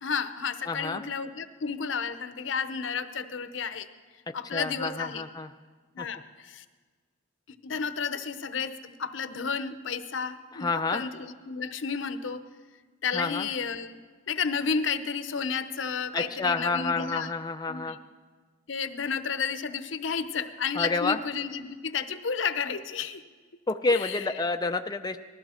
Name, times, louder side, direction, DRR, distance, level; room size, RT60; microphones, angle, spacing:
voice 1, 0.0-3.9 4.3-5.2 5.9-6.6 7.6-12.5 13.0-14.0 14.3-17.3 17.7-18.0 18.7-23.2 23.9-24.3, left 6 dB, 70° left, 11 dB, 0.8 m, -32 dB
voice 2, 0.7-1.0 4.5-5.5 6.0-6.1 10.5-11.0 13.1-13.5 16.1-18.0 20.7-21.2 23.7-25.2, left 3 dB, 20° left, 6 dB, 0.4 m, -29 dB
19.5 x 14.0 x 4.4 m, 1.5 s
head